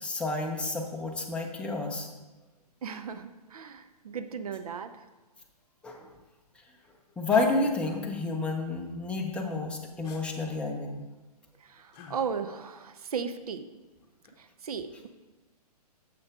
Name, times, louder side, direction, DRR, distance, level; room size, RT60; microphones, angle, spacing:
voice 1, 0.0-2.1 5.8-6.0 7.2-11.0, left 3 dB, 5° left, 0 dB, 0.9 m, -30 dB
voice 2, 2.8-4.9 11.6-13.6 14.6-15.1, right 6 dB, 65° right, 10 dB, 0.7 m, -36 dB
sound 1, 7.3-7.5 10.0-10.2 11.9-12.2 14.0-14.4, right 2 dB, 35° left, 1.3 m, -41 dB
7.0 x 6.5 x 4.8 m, 1.1 s
figure-of-eight pair, 125°, 21 cm